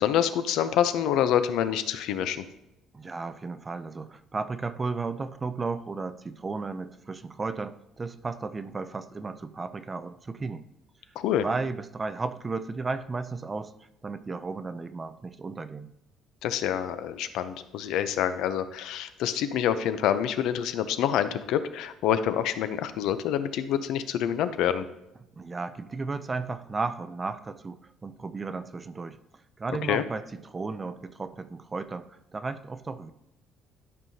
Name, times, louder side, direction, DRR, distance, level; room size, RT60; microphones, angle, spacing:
voice 1, 0.0-2.5 11.2-11.4 16.4-24.9 29.9-30.0, left 10 dB, 65° left, 12 dB, 0.5 m, -27 dB
voice 2, 2.9-10.6 11.4-13.7 14.0-15.9 25.4-29.2 29.6-33.1, right 4 dB, 15° right, 11 dB, 0.3 m, -34 dB
12.0 x 5.4 x 2.8 m, 0.85 s
cardioid pair, 170°, 0 cm